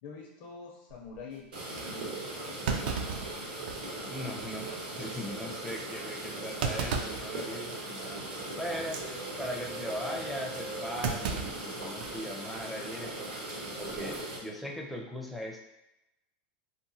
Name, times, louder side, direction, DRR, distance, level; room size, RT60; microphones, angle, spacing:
voice 1, 0.0-3.0, left 5 dB, 65° left, -2 dB, 0.5 m, -47 dB
Thump thud, 0.9-1.2 1.8-1.9 2.7-4.0 4.4-4.5 5.0-5.2 6.6-7.3 7.7-8.0 8.8-9.1 11.0-12.2 12.6-12.7 13.8-14.1, right 5 dB, 75° right, 0.4 m, -34 dB
sound 1, 1.5-14.4, right 2 dB, 90° right, 1.2 m, -39 dB
sound 2, 3.5-11.5, left 1 dB, 50° right, 0.7 m, -48 dB
voice 2, 4.1-13.3 13.8-15.6, equal, ahead, -1 dB, 0.4 m, -39 dB
2.9 x 2.1 x 2.6 m, 0.93 s
supercardioid pair, 135°, 5 cm